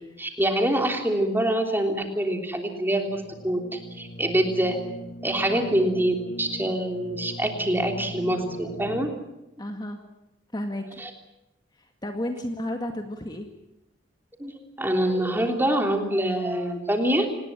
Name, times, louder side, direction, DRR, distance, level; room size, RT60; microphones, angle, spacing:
voice 1, 0.2-4.8 5.2-9.1 11.0-11.1 14.4-17.3, right 1 dB, 10° right, 3 dB, 3.3 m, -25 dB
sound 1, 3.1-9.1, equal, 80° left, 3.6 m, -40 dB
voice 2, 9.6-10.0 10.5-11.0 11.8-13.5, left 1 dB, 20° left, 4 dB, 1.9 m, -32 dB
27.0 x 20.0 x 7.6 m, 0.92 s
head